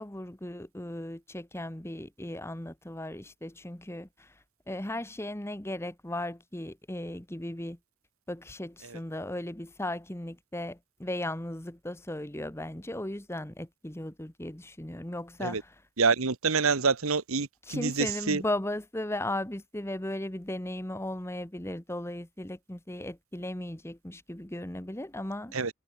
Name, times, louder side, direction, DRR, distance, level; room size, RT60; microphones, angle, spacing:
voice 1, 0.0-4.4 4.7-7.8 8.3-15.7 17.7-25.7, left 1 dB, 10° left, 1.2 m, -36 dB
voice 2, 16.0-18.4 25.5-25.7, right 4 dB, 85° right, 1.4 m, -27 dB
head